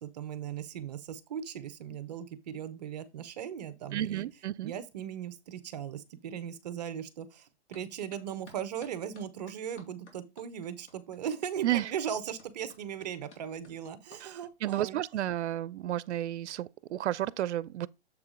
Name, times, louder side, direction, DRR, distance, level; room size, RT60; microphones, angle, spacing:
voice 1, 0.0-4.3 4.6-15.0, right 9 dB, 40° right, 0.8 m, -38 dB
voice 2, 3.9-4.7 11.6-11.9 14.2-17.9, right 13 dB, 85° right, 0.5 m, -32 dB
sound 1, 7.7-7.8 8.1-14.8, left 3 dB, 90° left, 3.5 m, -55 dB
7.2 x 4.8 x 3.7 m
hypercardioid pair, 165°, 34 cm